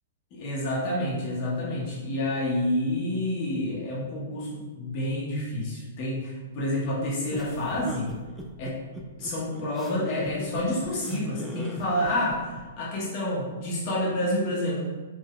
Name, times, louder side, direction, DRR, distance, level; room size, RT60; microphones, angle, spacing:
voice 1, 0.3-8.1 8.6-8.8 9.2-14.8, left 1 dB, 40° left, -5 dB, 0.8 m, -29 dB
sound 1, 7.3-12.6, right 1 dB, 10° right, 0.4 m, -39 dB
3.6 x 2.6 x 2.2 m, 1.3 s
figure-of-eight pair, 110°, 0 cm